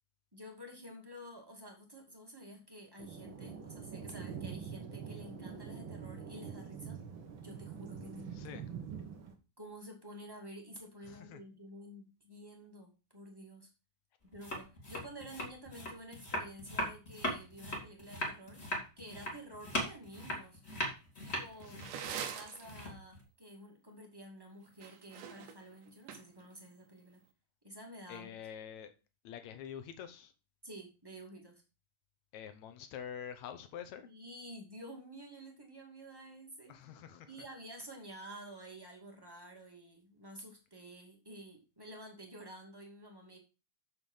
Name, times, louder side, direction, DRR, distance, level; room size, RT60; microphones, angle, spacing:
voice 1, 0.3-7.0 7.4-9.0 9.6-13.7 14.2-18.7 19.0-20.6 21.2-27.2 27.6-28.4 30.6-31.6 34.0-36.8 37.3-43.4, equal, 10° right, 1.7 m, -51 dB
Thunder, 3.0-9.3, right 6 dB, 55° right, 1.4 m, -45 dB
voice 2, 11.1-11.4 21.7-21.9 28.1-28.9 29.2-30.3 32.3-34.1 36.7-37.3, left 9 dB, 70° left, 1.8 m, -46 dB
sound 1, 14.3-23.2, equal, 20° left, 2.6 m, -39 dB
sound 2, 21.3-22.7 24.7-26.5, right 8 dB, 70° right, 2.5 m, -43 dB
7.7 x 7.0 x 5.6 m
omnidirectional pair, 4.1 m